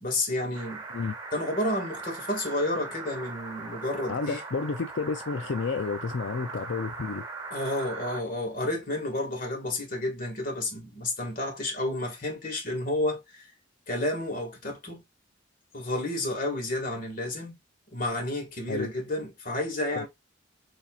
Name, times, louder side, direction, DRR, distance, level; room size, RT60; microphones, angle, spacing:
voice 1, 0.0-0.8 1.3-4.4 7.5-13.5 13.9-15.0 15.7-17.6 17.9-20.1, left 1 dB, 45° left, 1.9 m, -31 dB
sound 1, 0.5-8.2, right 3 dB, 20° right, 1.3 m, -40 dB
voice 2, 4.1-7.3 18.7-18.9 19.9-20.1, left 4 dB, 70° left, 0.5 m, -31 dB
7.1 x 2.8 x 2.4 m
head